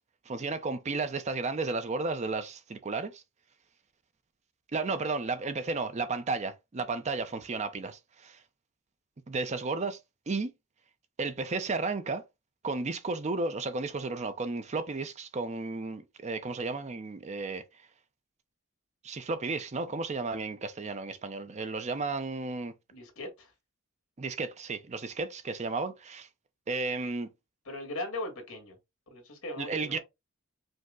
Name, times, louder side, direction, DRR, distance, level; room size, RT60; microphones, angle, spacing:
voice 1, 0.3-3.2 4.7-8.4 9.3-10.0 10.3-10.5 11.2-12.2 12.6-17.6 19.0-22.7 24.2-26.3 26.7-27.3 29.6-30.0, right 3 dB, 30° right, 0.5 m, -33 dB
voice 2, 22.9-23.5 27.7-28.8 29.1-30.0, left 2 dB, 70° left, 1.8 m, -39 dB
5.2 x 2.1 x 3.6 m
head